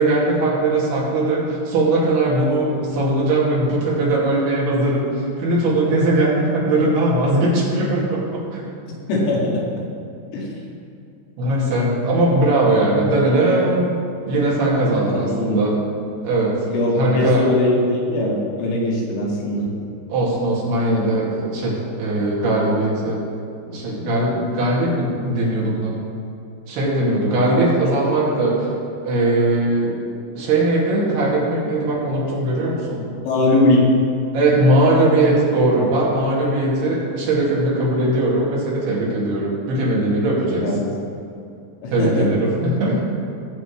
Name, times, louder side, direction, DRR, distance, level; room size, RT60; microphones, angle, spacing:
voice 1, 0.0-8.6 11.4-14.0 14.3-15.7 16.2-16.5 17.0-17.5 20.1-23.2 23.6-25.9 26.7-28.7 29.0-30.0 30.3-33.0 34.3-40.6 41.9-43.0, right 2 dB, 60° right, -6 dB, 4.1 m, -19 dB
voice 2, 9.1-9.6 10.3-10.5 15.1-15.7 16.7-19.7 27.4-27.6 33.2-33.8 40.6-40.9 41.8-42.3, left 2 dB, 80° left, -5 dB, 4.5 m, -20 dB
18.5 x 7.4 x 3.3 m, 2.5 s
omnidirectional pair, 5.6 m